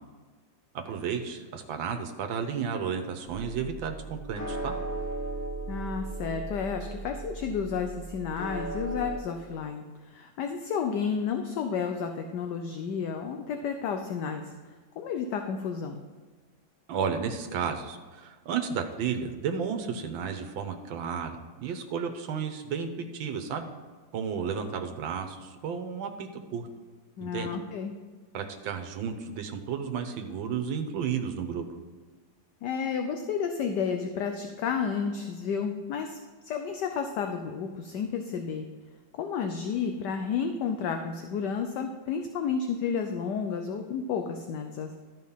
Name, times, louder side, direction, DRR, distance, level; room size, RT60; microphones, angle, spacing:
voice 1, 0.8-4.7 16.9-23.7 24.1-26.7 27.2-27.5 28.3-31.6, right 6 dB, 75° right, 5 dB, 1.7 m, -33 dB
sound 1, 3.3-9.2, right 2 dB, 40° left, 1.4 m, -37 dB
voice 2, 5.7-14.5 15.0-16.0 27.2-27.9 32.6-36.2 36.4-38.7 39.2-44.9, left 6 dB, 65° left, 5 dB, 1.2 m, -31 dB
12.5 x 5.2 x 5.7 m, 1.4 s
omnidirectional pair, 2.1 m